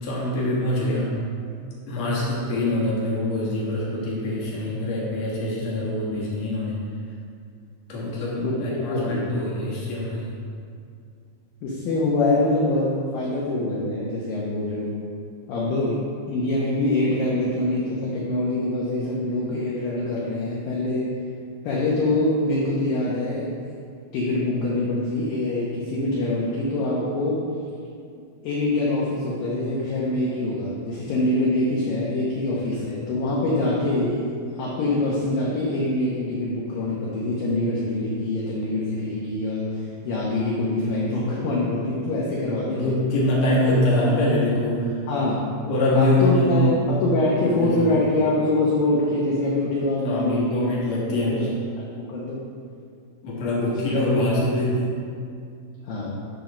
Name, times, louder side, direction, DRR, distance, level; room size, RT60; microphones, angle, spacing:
voice 1, 0.0-1.2 1.9-6.8 7.9-10.3 42.7-45.0 45.7-46.8 47.4-47.9 50.0-51.5 53.2-55.0, left 1 dB, 70° left, -6 dB, 1.6 m, -24 dB
voice 2, 8.9-9.2 11.6-14.9 15.5-21.1 21.6-23.6 24.1-27.4 28.4-34.3 34.6-42.9 45.1-45.5 45.9-50.6 51.1-51.5 51.8-52.4 53.6-53.7 54.3-54.4 55.9-56.1, left 2 dB, 90° left, -5 dB, 2.0 m, -24 dB
9.1 x 3.9 x 5.9 m, 2.3 s
omnidirectional pair, 5.5 m